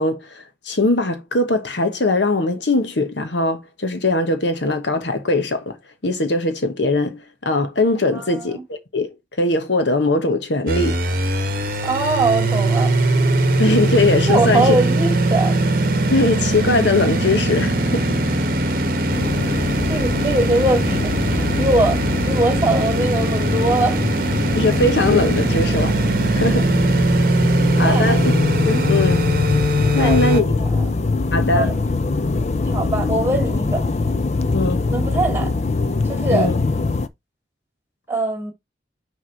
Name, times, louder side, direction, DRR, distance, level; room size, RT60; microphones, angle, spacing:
voice 1, 0.0-5.8 6.0-11.0 13.6-14.8 16.1-18.2 24.5-26.7 27.8-28.2 28.7-29.2 29.9-30.5 31.3-31.7 34.5-34.8 36.3-36.6, left 2 dB, 80° left, 1.2 m, -20 dB
voice 2, 8.1-8.6 11.8-13.0 14.3-15.6 19.2-24.0 27.8-28.2 28.7-28.9 29.9-30.8 31.5-31.9 32.7-33.8 34.9-35.5 36.0-36.5 38.1-38.5, right 2 dB, 15° right, 2.2 m, -22 dB
sound 1, 10.7-30.4, right 1 dB, 50° right, 0.9 m, -20 dB
sound 2, 19.1-37.1, left 3 dB, 40° left, 0.4 m, -23 dB
6.1 x 3.5 x 4.5 m
head